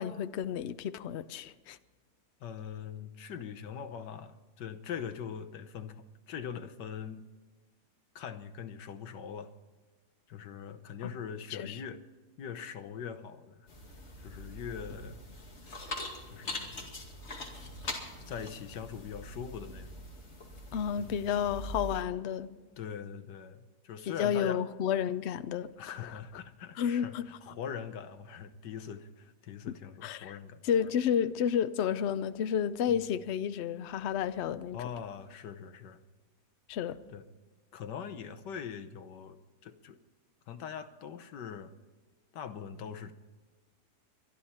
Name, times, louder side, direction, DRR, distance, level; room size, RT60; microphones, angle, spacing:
voice 1, 0.0-1.8 11.0-11.1 11.5-11.8 20.7-22.5 24.1-25.7 26.0-26.1 26.8-27.2 30.0-30.3 30.6-34.8 36.7-37.0, left 8 dB, 65° left, 0.6 m, -31 dB
voice 2, 2.4-7.3 8.1-9.5 10.3-12.0 12.4-13.7 14.2-15.2 15.6-16.9 18.2-20.0 21.0-21.6 22.8-24.6 25.8-30.6 32.9-33.0 34.7-36.0 37.1-37.2 37.7-39.3 39.6-40.0 40.5-41.7 42.3-43.1, left 7 dB, 80° left, 1.6 m, -42 dB
sound 1, 13.7-22.0, left 1 dB, 40° left, 2.5 m, -43 dB
24.0 x 11.0 x 4.3 m
omnidirectional pair, 1.8 m